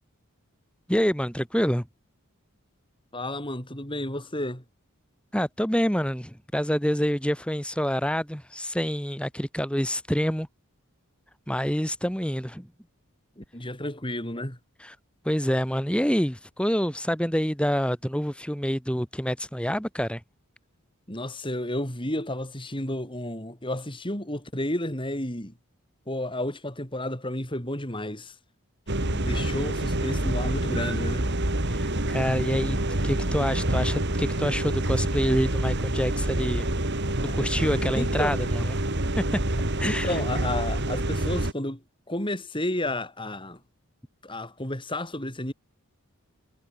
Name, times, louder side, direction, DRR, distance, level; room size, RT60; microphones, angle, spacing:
voice 1, 0.9-1.9 5.3-10.5 11.5-12.7 14.8-15.0 15.2-20.2 31.7-32.8 33.0-36.7 37.3-38.8 39.2-39.4 39.8-40.2, equal, 5° left, 5.2 m, -27 dB
voice 2, 3.1-4.6 13.4-14.6 21.1-25.5 26.1-28.3 29.0-31.3 37.1-37.2 37.6-38.4 39.8-41.8 42.1-43.6 44.2-45.5, left 1 dB, 25° left, 6.2 m, -32 dB
sound 1, 28.9-41.5, right 1 dB, 50° right, 2.9 m, -27 dB
head